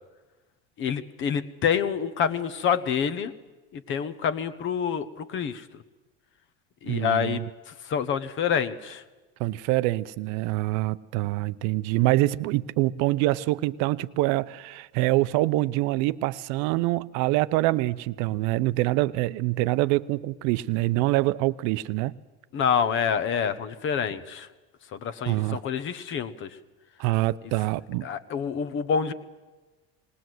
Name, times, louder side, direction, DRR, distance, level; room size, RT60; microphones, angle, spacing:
voice 1, 0.8-3.3 3.7-5.6 6.8-7.4 7.8-9.0 22.5-24.5 24.9-26.5 28.0-29.1, left 7 dB, 40° left, 1.0 m, -27 dB
voice 2, 6.9-7.5 9.4-22.2 25.3-25.6 27.0-28.1, right 18 dB, 65° right, 0.6 m, -25 dB
20.0 x 18.5 x 7.8 m
cardioid pair, 140°, 30 cm